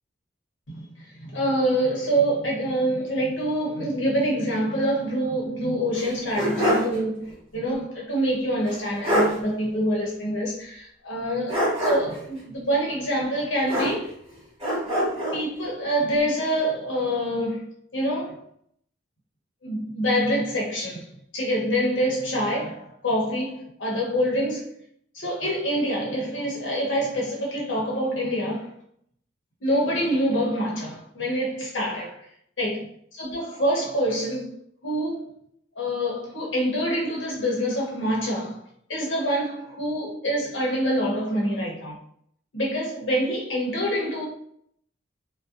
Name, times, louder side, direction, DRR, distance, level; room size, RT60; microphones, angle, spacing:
voice 1, 0.7-14.1 15.3-18.4 19.6-21.1 21.3-24.7 25.1-28.7 29.6-32.2 32.6-32.9 33.2-34.6 34.8-35.4 35.8-38.6 38.9-42.0 42.5-44.3, equal, 65° left, 0.9 m, -26 dB
sound 1, 5.9-7.0 7.3-7.4 8.7-8.8 9.0-9.4 11.5-12.2 13.7-14.3 14.6-15.4, equal, 30° right, 1.1 m, -24 dB
2.5 x 2.1 x 2.4 m
head